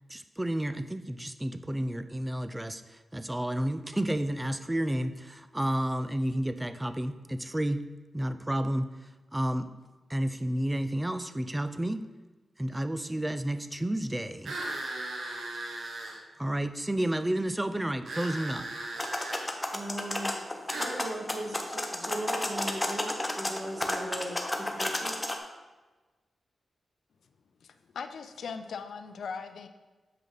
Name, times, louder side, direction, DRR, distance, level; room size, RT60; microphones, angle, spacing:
voice 1, 0.1-7.8 8.1-9.7 10.1-12.0 12.6-14.6 16.4-18.7, right 1 dB, 15° right, 10 dB, 0.4 m, -31 dB
sound 1, 14.4-16.2 18.0-19.4 20.7-21.0, right 2 dB, 70° right, 1.2 m, -37 dB
sound 2, 19.0-25.4, left 1 dB, 15° left, 0.9 m, -32 dB
voice 2, 19.7-25.2, right 1 dB, 35° right, -2 dB, 2.0 m, -38 dB
voice 3, 27.6-29.7, left 5 dB, 80° left, 9 dB, 0.5 m, -39 dB
7.4 x 5.1 x 3.9 m, 1.2 s
cardioid pair, 75°, 0 cm